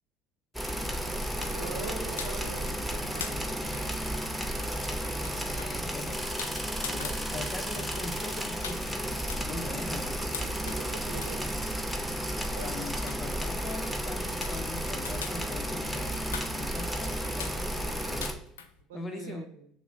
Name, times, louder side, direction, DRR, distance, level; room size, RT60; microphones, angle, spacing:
sound 1, 0.5-18.3, equal, ahead, 0.8 m, -33 dB
sound 2, 0.6-18.8, left 7 dB, 85° left, 0.4 m, -45 dB
voice 1, 1.4-3.5 10.4-11.6 12.5-12.9 18.9-19.7, right 4 dB, 80° right, 6 dB, 0.6 m, -43 dB
voice 2, 5.3-6.3 6.9-8.9 9.5-10.1 12.6-18.3 18.9-19.5, left 3 dB, 40° left, 6 dB, 0.7 m, -41 dB
6.0 x 2.1 x 3.8 m, 0.69 s
hypercardioid pair, 65°, 0 cm